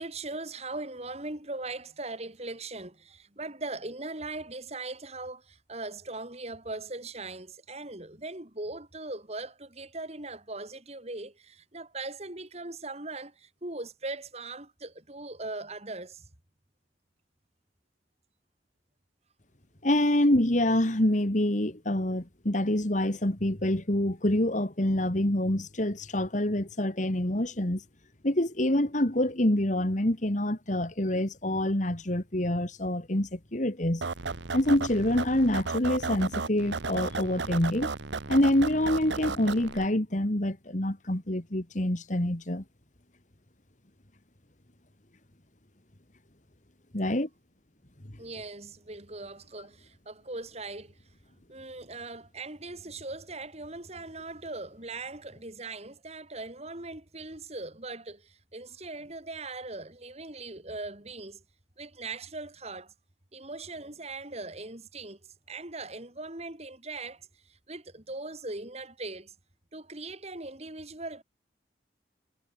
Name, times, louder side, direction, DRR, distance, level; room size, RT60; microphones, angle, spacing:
voice 1, 0.0-16.2 48.2-50.9 51.5-61.4 61.8-62.9 63.3-65.2 65.5-67.3 67.7-69.3 69.7-71.2, right 2 dB, 35° right, 3.2 m, -40 dB
voice 2, 19.8-27.8 28.2-34.0 34.5-37.9 38.3-42.6 46.9-47.3, left 1 dB, 45° left, 2.2 m, -26 dB
sound 1, 34.0-39.9, right 4 dB, 80° right, 1.1 m, -34 dB
head